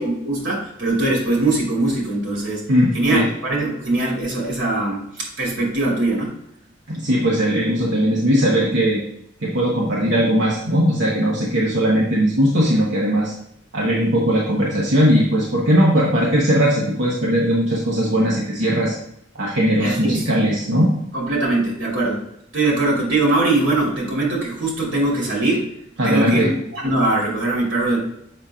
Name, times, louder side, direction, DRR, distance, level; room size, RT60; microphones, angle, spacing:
voice 1, 0.0-2.7 2.9-6.3 19.8-20.3 21.1-22.2 22.5-25.7 26.0-28.0, right 2 dB, 85° right, -3 dB, 2.5 m, -21 dB
voice 2, 2.7-3.3 6.9-9.0 9.4-13.3 13.7-19.0 19.3-20.9 26.0-26.5, equal, 65° right, -4 dB, 1.1 m, -19 dB
7.2 x 5.7 x 2.4 m, 0.75 s
head